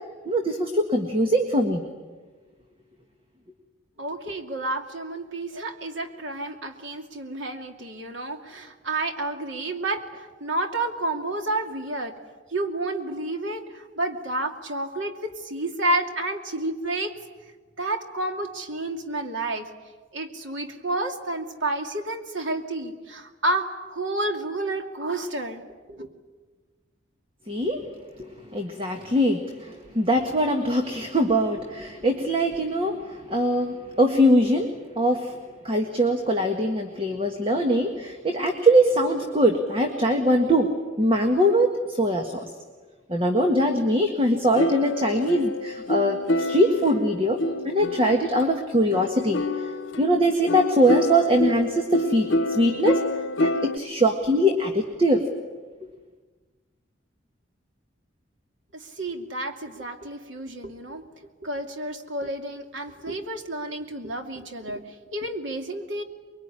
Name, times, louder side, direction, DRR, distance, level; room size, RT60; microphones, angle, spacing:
voice 1, 0.2-1.9 27.5-27.8 28.2-35.4 35.6-42.5 43.1-47.4 47.6-49.7 50.0-53.0 53.4-55.3, equal, 30° right, 4 dB, 1.7 m, -22 dB
voice 2, 4.0-12.1 12.5-17.1 17.8-19.7 20.1-26.1 58.7-61.0 61.4-66.0, right 2 dB, 80° right, 4 dB, 2.6 m, -30 dB
sound 1, 44.6-48.4 48.9-53.8, left 1 dB, 85° left, 1.0 m, -27 dB
24.0 x 23.0 x 10.0 m, 1.4 s
head